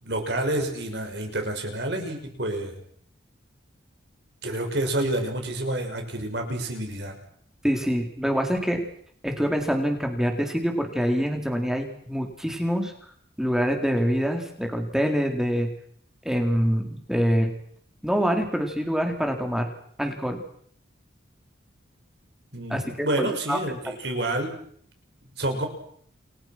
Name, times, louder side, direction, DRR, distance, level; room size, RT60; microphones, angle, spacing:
voice 1, 0.0-2.8 4.4-7.2 22.5-24.5 25.4-25.7, right 1 dB, 55° right, 4 dB, 6.3 m, -28 dB
voice 2, 7.6-8.8 9.2-12.9 13.4-15.7 16.2-17.5 18.0-19.7 20.0-20.4 22.7-23.8, equal, 5° right, 3 dB, 4.4 m, -25 dB
29.5 x 22.0 x 6.1 m, 0.63 s
head